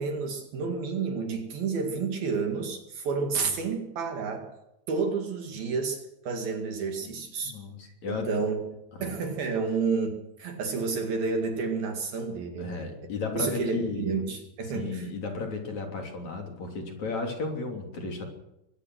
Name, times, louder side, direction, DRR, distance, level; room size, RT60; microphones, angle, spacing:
voice 1, 0.0-4.5 4.9-7.6 7.8-8.6 9.0-12.9 13.3-15.1, right 4 dB, 60° right, 4 dB, 3.7 m, -30 dB
voice 2, 7.0-8.3 8.9-9.2 12.6-14.1 14.7-18.3, left 4 dB, 40° left, 3 dB, 4.1 m, -34 dB
22.5 x 18.0 x 6.3 m, 0.88 s
omnidirectional pair, 5.2 m